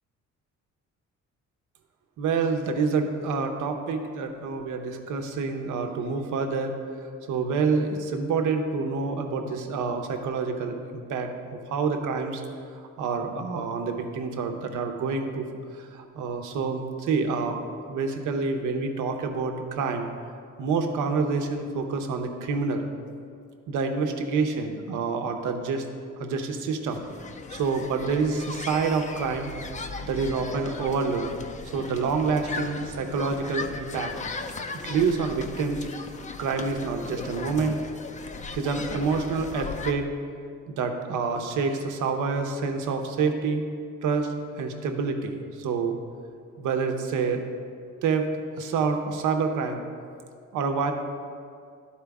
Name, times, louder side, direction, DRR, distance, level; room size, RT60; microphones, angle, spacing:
voice 1, 2.2-6.7 7.3-11.3 11.7-12.4 12.7-15.5 15.7-17.6 17.9-20.1 20.6-22.9 23.7-25.8 26.2-27.0 27.5-29.5 30.0-31.2 31.7-34.1 34.8-35.9 36.4-37.8 38.5-40.1 40.7-43.7 44.0-46.0 46.6-47.4 48.0-48.3 48.6-49.8 50.5-50.9, right 4 dB, 85° right, 4 dB, 0.8 m, -27 dB
sound 1, 26.9-39.9, left 4 dB, 25° left, 0.4 m, -37 dB
11.0 x 4.4 x 3.5 m, 2.3 s
cardioid pair, 90°, 30 cm